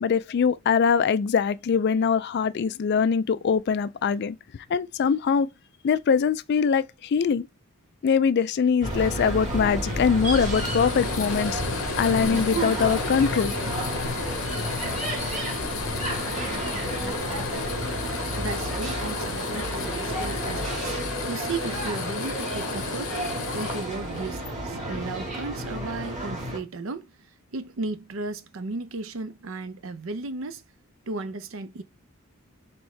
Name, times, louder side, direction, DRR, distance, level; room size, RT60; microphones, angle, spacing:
voice 1, 0.0-4.4 4.7-5.5 5.8-7.5 8.0-11.6 12.0-13.5, left 6 dB, 50° left, 0.3 m, -23 dB
sound 1, 8.8-26.6, right 1 dB, 30° right, 1.7 m, -31 dB
sound 2, 8.9-17.7, equal, 90° right, 1.5 m, -42 dB
sound 3, 9.0-24.5, left 5 dB, 70° left, 0.8 m, -34 dB
voice 2, 18.4-21.0 21.3-23.2 23.5-27.1 27.5-30.6 31.1-31.8, right 3 dB, 65° right, 0.6 m, -35 dB
4.5 x 3.6 x 3.2 m
head